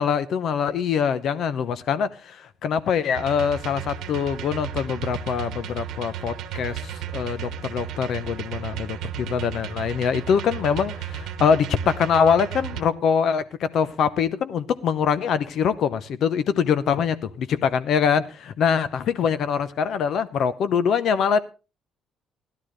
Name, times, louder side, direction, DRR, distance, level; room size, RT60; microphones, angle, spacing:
voice 1, 0.0-21.4, left 7 dB, 50° left, 14 dB, 0.8 m, -23 dB
sound 1, 3.2-12.8, right 9 dB, 70° right, 1.1 m, -34 dB
16.5 x 12.0 x 3.2 m, 0.31 s
cardioid pair, 175°, 0 cm